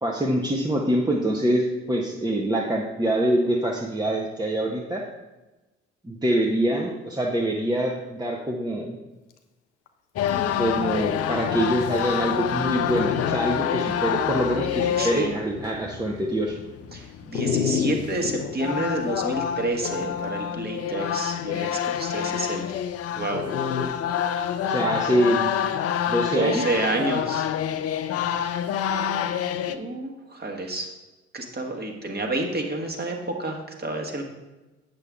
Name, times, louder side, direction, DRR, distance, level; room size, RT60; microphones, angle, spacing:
voice 1, 0.0-5.0 6.0-8.9 10.6-16.6 24.6-25.5 26.1-26.6, right 1 dB, 10° right, -1 dB, 1.0 m, -25 dB
Dog, 9.9-10.0 10.2-10.5 11.2-11.3 12.0-12.1 12.8-13.4 13.9-14.0 17.3-18.4 19.8-20.4 23.3-23.8, left 7 dB, 80° left, 0.7 m, -27 dB
sound 1, 10.2-29.8, left 9 dB, 45° left, 0.6 m, -28 dB
voice 2, 15.0-15.3 16.9-22.8 23.2-23.4 26.3-27.5 29.7-30.9 31.3-34.2, right 2 dB, 30° right, 2 dB, 1.7 m, -29 dB
7.9 x 6.9 x 3.7 m, 1.1 s
hypercardioid pair, 50°, 34 cm